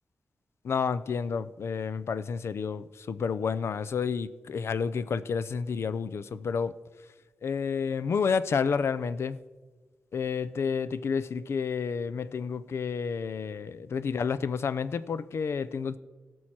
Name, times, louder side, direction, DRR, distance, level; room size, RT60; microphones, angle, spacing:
voice 1, 0.6-6.8 7.4-9.4 10.1-16.0, left 6 dB, 70° left, 16 dB, 0.5 m, -30 dB
17.5 x 6.3 x 4.3 m, 1.3 s
cardioid pair, 80°, 5 cm